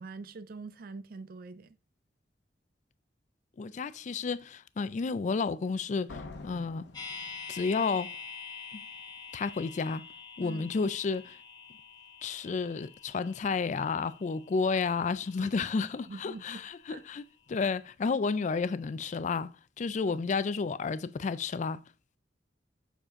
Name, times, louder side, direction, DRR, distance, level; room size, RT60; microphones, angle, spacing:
voice 1, 0.0-1.8 10.4-10.7 15.4-15.6 16.1-16.6 16.9-17.0 20.1-20.2, right 4 dB, 55° right, 0.4 m, -44 dB
voice 2, 3.6-6.9 7.5-8.1 8.7-8.8 9.3-10.0 10.4-11.4 12.2-19.5 19.8-21.8, left 4 dB, 45° left, 0.4 m, -31 dB
Slam, 6.1-8.0, left 3 dB, 75° left, 0.8 m, -46 dB
sound 1, 6.9-17.0 17.3-17.4, left 5 dB, 25° left, 1.7 m, -47 dB
6.7 x 4.9 x 3.6 m
head